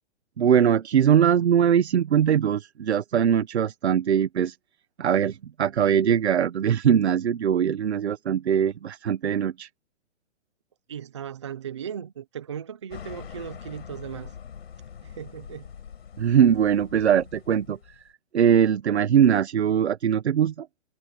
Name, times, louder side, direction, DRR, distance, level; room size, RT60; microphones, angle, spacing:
voice 1, 0.4-4.6 5.0-9.7 16.2-17.8 18.3-20.7, right 8 dB, 70° right, 1.3 m, -21 dB
voice 2, 10.9-14.3 15.0-15.7, right 8 dB, 25° right, 0.6 m, -37 dB
sound 1, 12.9-18.1, left 8 dB, 65° left, 4.8 m, -43 dB
hypercardioid pair, 180°, 34 cm